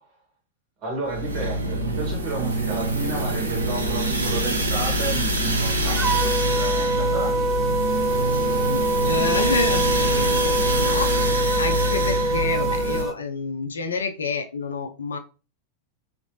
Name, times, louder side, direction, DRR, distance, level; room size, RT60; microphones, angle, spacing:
voice 1, 0.8-7.4, right 2 dB, 40° right, 1.4 m, -32 dB
sound 1, 1.1-13.0, right 1 dB, 75° right, 0.6 m, -25 dB
sound 2, 6.0-13.1, right 2 dB, 10° right, 0.4 m, -24 dB
voice 2, 8.3-15.2, left 4 dB, 70° left, 0.4 m, -29 dB
3.0 x 2.5 x 2.7 m
figure-of-eight pair, 90°, 0 cm